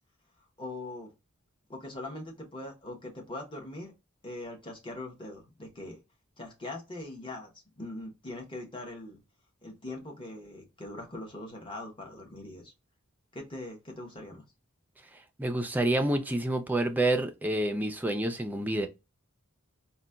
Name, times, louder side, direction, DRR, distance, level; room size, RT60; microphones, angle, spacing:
voice 1, 0.6-1.1 1.7-3.9 4.2-6.0 6.4-9.2 9.6-12.7 13.3-14.4, left 2 dB, 25° left, 0.9 m, -41 dB
voice 2, 15.4-18.9, right 1 dB, 10° right, 0.4 m, -28 dB
4.0 x 2.2 x 2.2 m
head